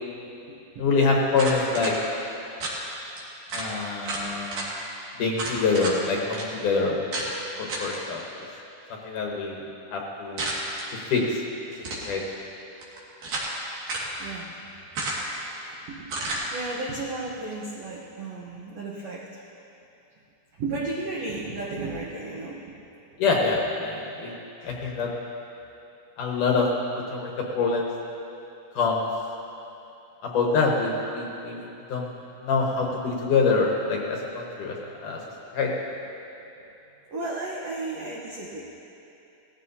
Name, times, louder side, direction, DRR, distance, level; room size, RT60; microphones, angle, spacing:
voice 1, 0.8-1.9 3.5-4.6 5.2-7.2 7.6-8.2 9.0-9.6 9.9-10.5 11.1-11.4 12.1-12.2 23.2-24.4 24.6-25.1 26.2-26.7 27.1-27.9 28.7-29.1 30.2-31.6 31.9-32.1 32.4-35.2 35.5-35.7, left 4 dB, 65° left, -1 dB, 2.3 m, -25 dB
sound 1, 1.3-1.9 2.6-2.8 3.2-3.3 3.5-3.7 4.0-4.7 5.4-6.0 6.3-6.4 7.1-7.3 7.7-8.0 10.4-10.9 11.7-12.1 12.8-13.5 13.9-14.1 14.9-15.4 16.1-16.4, right 2 dB, 55° right, 3.3 m, -31 dB
voice 2, 15.4-19.4 20.6-22.8 37.1-38.6, right 2 dB, 85° right, -4 dB, 1.4 m, -34 dB
18.5 x 15.0 x 2.7 m, 2.8 s
omnidirectional pair, 4.6 m